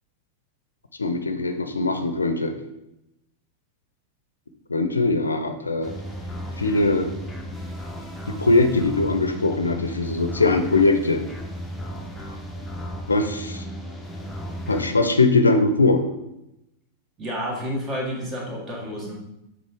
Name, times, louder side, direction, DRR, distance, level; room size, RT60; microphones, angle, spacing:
voice 1, 1.0-2.6 4.7-5.9 6.6-7.1 8.3-11.3 13.1-13.6 14.7-16.1, left 3 dB, 80° left, 7 dB, 0.5 m, -21 dB
sound 1, 5.8-14.9, equal, 5° left, 0.9 m, -35 dB
voice 2, 17.2-19.1, equal, 25° right, -2 dB, 1.8 m, -30 dB
7.3 x 3.8 x 3.5 m, 0.88 s
figure-of-eight pair, 90°, 0 cm